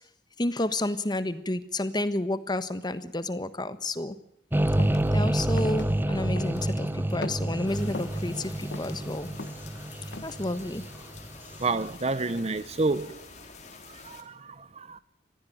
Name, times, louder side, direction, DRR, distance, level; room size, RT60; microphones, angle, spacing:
voice 1, 0.4-4.2 5.1-9.3 10.2-10.8, left 1 dB, 25° left, 1.3 m, -30 dB
sound 1, 4.5-11.6, right 1 dB, 10° right, 1.1 m, -28 dB
sound 2, 4.8-5.1 5.6-5.8 6.4-6.7 7.1-8.2 8.6-9.7 10.1-10.4, left 2 dB, 65° left, 1.1 m, -40 dB
sound 3, 7.6-14.2, left 4 dB, 40° left, 3.2 m, -48 dB
voice 2, 11.6-13.3 13.9-15.0, right 3 dB, 35° right, 0.8 m, -29 dB
20.5 x 15.5 x 9.2 m
head